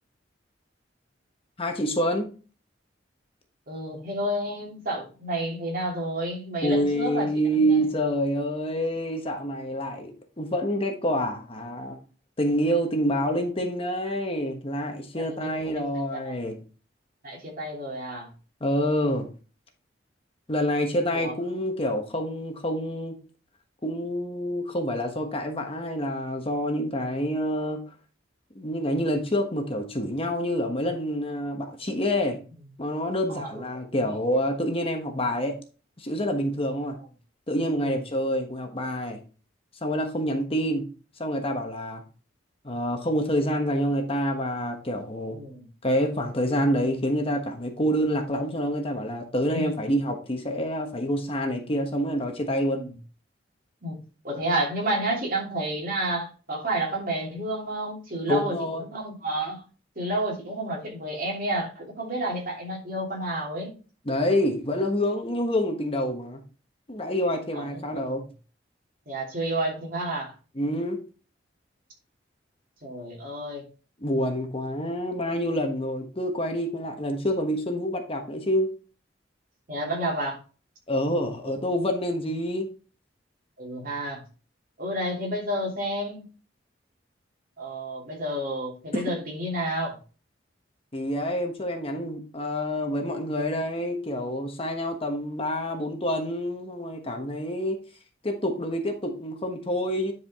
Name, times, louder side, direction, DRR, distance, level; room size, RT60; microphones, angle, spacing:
voice 1, 1.6-2.3 6.6-12.0 12.4-16.6 18.6-19.3 20.5-23.2 23.8-27.8 28.5-32.4 32.8-35.5 36.0-37.0 37.5-39.2 39.8-40.8 41.2-42.0 42.6-45.4 45.8-52.8 58.3-58.8 64.0-66.4 66.9-68.2 70.6-71.0 74.0-78.7 80.9-82.7 88.9-89.0 90.9-97.8 98.2-100.1, equal, 30° left, 1.2 m, -27 dB
voice 2, 3.7-7.8 15.1-15.9 16.2-16.4 17.2-18.3 21.1-21.3 33.3-33.6 34.0-34.1 37.7-38.0 45.3-45.7 49.5-49.8 52.7-52.9 53.8-54.0 54.2-59.6 59.9-63.7 67.5-67.7 69.1-70.3 72.8-73.7 79.7-80.4 81.4-81.5 83.6-84.2 84.8-86.2 87.6-90.0, right 1 dB, 50° right, 2.9 m, -30 dB
10.0 x 4.9 x 3.6 m
head